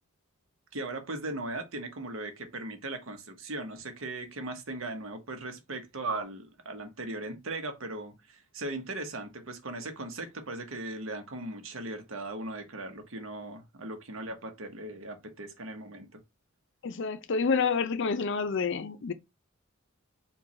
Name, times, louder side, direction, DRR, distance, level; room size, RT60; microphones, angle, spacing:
voice 1, 0.7-16.2, right 2 dB, 80° right, 1.0 m, -38 dB
voice 2, 16.8-19.1, left 5 dB, 65° left, 0.5 m, -28 dB
4.5 x 2.4 x 4.1 m
head